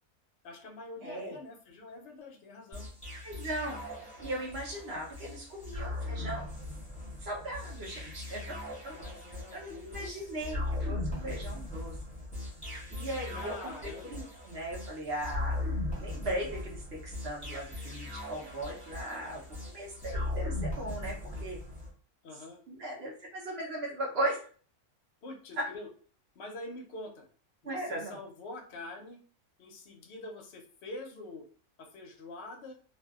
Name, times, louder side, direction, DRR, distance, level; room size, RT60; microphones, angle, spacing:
voice 1, 0.4-2.9 8.9-10.7 11.2-11.4 13.3-14.2 22.2-22.6 25.2-25.9 26.3-27.3 27.6-29.2 29.6-31.5 31.8-32.7, left 2 dB, 60° left, 2 dB, 0.7 m, -45 dB
voice 2, 1.0-1.4 3.2-3.8 4.2-6.5 7.2-8.6 8.8-9.0 9.5-12.0 12.9-15.6 16.0-19.4 19.7-21.6 22.7-24.4 25.6-25.7 27.6-28.2, right 1 dB, 50° right, -2 dB, 0.9 m, -38 dB
sound 1, 2.7-21.9, left 2 dB, 5° left, 0.9 m, -38 dB
2.6 x 2.4 x 2.3 m, 0.43 s
omnidirectional pair, 1.6 m